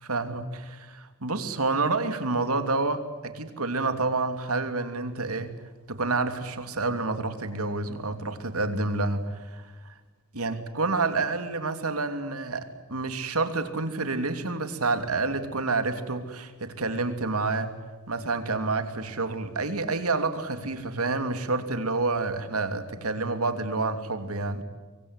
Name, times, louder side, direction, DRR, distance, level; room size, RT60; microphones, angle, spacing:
voice 1, 0.0-5.6 5.9-9.7 10.3-17.8 18.1-24.6, right 3 dB, 80° right, 9 dB, 2.9 m, -28 dB
25.0 x 24.0 x 9.7 m, 1.3 s
head